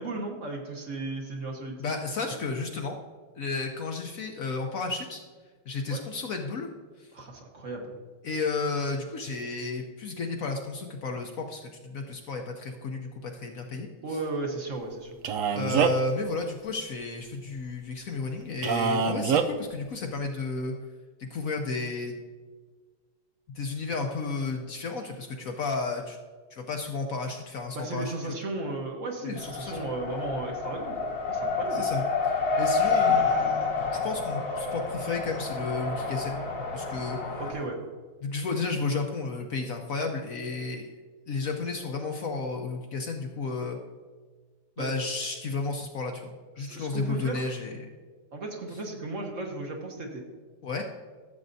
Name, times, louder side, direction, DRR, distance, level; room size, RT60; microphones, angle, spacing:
voice 1, 0.0-1.8 5.9-6.0 7.1-7.9 14.0-15.1 27.7-31.9 32.9-33.6 37.4-37.8 44.8-44.9 46.6-47.5 48.3-50.2, right 2 dB, 50° right, 0 dB, 1.4 m, -35 dB
voice 2, 1.8-2.9 3.3-5.2 5.7-6.7 7.0-7.1 8.2-13.9 15.5-20.7 21.2-22.2 23.5-26.2 26.5-28.3 29.2-29.9 31.7-32.0 32.6-36.4 36.7-37.4 38.2-40.9 41.3-43.8 44.8-47.9 50.6-50.9, left 3 dB, 60° left, 3 dB, 1.0 m, -32 dB
Male speech man speaking, 15.2-16.1 18.6-19.5, right 6 dB, 80° right, 0.7 m, -24 dB
Race car auto racing, 29.4-37.5, left 4 dB, 85° left, 2.4 m, -28 dB
14.5 x 7.5 x 2.7 m, 1.4 s
omnidirectional pair, 1.9 m